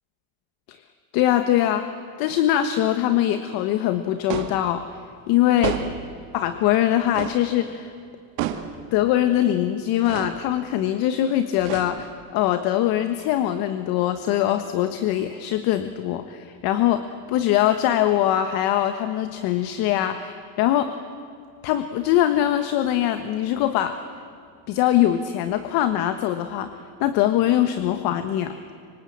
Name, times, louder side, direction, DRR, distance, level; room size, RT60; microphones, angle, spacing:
voice 1, 1.1-1.9 2.2-5.0 5.3-5.8 6.3-7.9 8.9-20.9 21.6-24.0 24.7-26.7 27.0-28.5, left 12 dB, 60° left, 9 dB, 1.4 m, -22 dB
sound 1, 4.3-4.7 5.6-6.1 7.1-7.5 8.4-8.8 10.0-10.4 11.6-12.2, right 11 dB, 90° right, 2.2 m, -30 dB
25.5 x 25.0 x 8.7 m, 2.4 s
cardioid pair, 155°, 41 cm